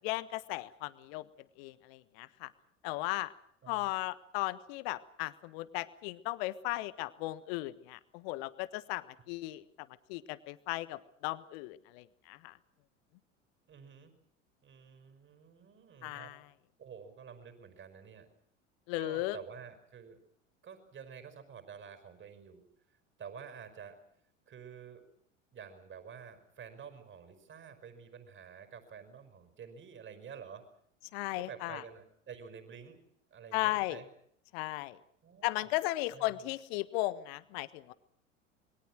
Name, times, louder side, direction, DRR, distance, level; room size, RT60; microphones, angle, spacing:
voice 1, 0.0-1.2 1.6-2.5 2.8-3.3 3.7-9.6 10.1-12.5 16.0-16.4 18.9-19.4 31.1-31.8 33.5-34.0 34.5-35.0 35.4-37.9, left 18 dB, 55° left, 15 dB, 1.5 m, -36 dB
voice 2, 3.6-3.9 13.7-14.1 14.6-16.3 16.8-18.3 19.0-20.2 20.6-22.6 22.9-24.0 24.5-25.0 25.5-30.7 31.4-33.0 33.3-34.1 35.2-35.7 36.1-36.4, right 7 dB, 30° right, 9 dB, 5.5 m, -50 dB
27.0 x 22.5 x 6.3 m, 0.67 s
figure-of-eight pair, 75°, 38 cm